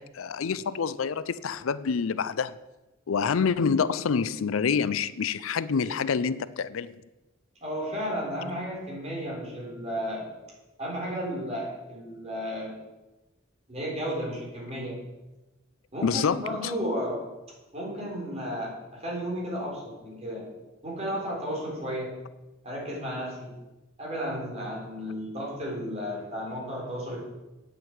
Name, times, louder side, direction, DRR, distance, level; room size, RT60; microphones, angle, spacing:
voice 1, 0.0-2.5 3.1-7.0 16.0-16.7, left 6 dB, 80° left, 17 dB, 0.5 m, -27 dB
voice 2, 7.6-10.2 10.8-12.7 13.7-14.9 15.9-17.2 17.7-20.5 20.8-22.1 22.6-23.5 24.0-27.2, equal, 30° right, -3 dB, 4.3 m, -33 dB
8.9 x 7.7 x 8.1 m, 1.1 s
head